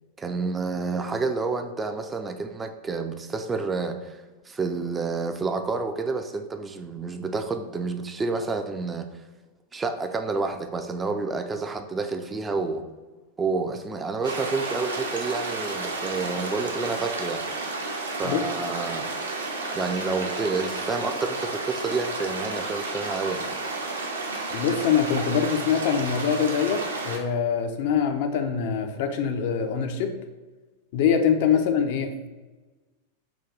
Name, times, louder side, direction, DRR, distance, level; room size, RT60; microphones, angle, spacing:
voice 1, 0.2-9.1 9.7-12.8 13.4-17.4 18.1-19.1 19.7-23.5 31.5-31.6, right 4 dB, 15° right, 6 dB, 0.3 m, -29 dB
sound 1, 14.2-27.2, right 3 dB, 70° right, 0.6 m, -32 dB
voice 2, 24.5-30.1 30.9-32.3, left 7 dB, 50° left, 6 dB, 0.4 m, -24 dB
3.9 x 2.3 x 4.5 m, 1.2 s
figure-of-eight pair, 90°, 0 cm